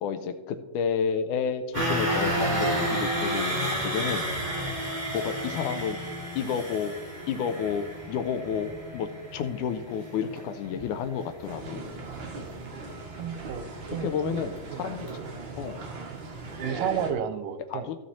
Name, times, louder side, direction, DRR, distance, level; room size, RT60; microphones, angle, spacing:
voice 1, 0.0-4.3 5.1-6.0 6.4-6.9 7.3-11.8 14.0-15.1 15.6-15.9 17.7-18.0, left 7 dB, 80° left, 9 dB, 2.1 m, -31 dB
sound 1, 1.7-15.8 16.1-16.3 16.7-16.8, right 1 dB, 15° right, 2.4 m, -32 dB
sound 2, 11.4-17.1, right 3 dB, 50° right, 1.6 m, -39 dB
voice 2, 13.2-13.6 13.9-14.4 14.7-15.0 15.2-15.3 16.6-17.9, right 8 dB, 85° right, 11 dB, 2.4 m, -32 dB
15.0 x 6.2 x 4.2 m, 1.1 s
omnidirectional pair, 3.8 m